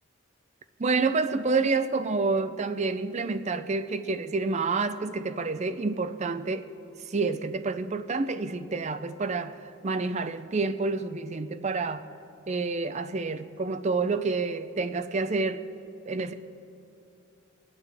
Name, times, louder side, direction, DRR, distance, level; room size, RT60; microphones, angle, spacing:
voice 1, 0.8-6.7 7.1-9.6 9.8-12.1 12.5-15.7 16.1-16.3, right 3 dB, 35° right, 0.5 m, -28 dB
24.5 x 9.6 x 3.4 m
head